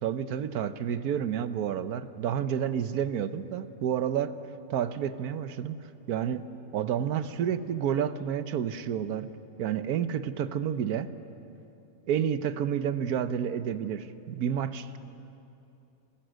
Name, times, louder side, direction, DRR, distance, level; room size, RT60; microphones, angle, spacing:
voice 1, 0.0-4.4 4.7-5.8 6.1-6.5 6.7-9.3 9.6-11.1 12.1-15.0, right 9 dB, 80° right, 12 dB, 1.3 m, -30 dB
28.0 x 19.0 x 6.4 m, 2.8 s
omnidirectional pair, 1.6 m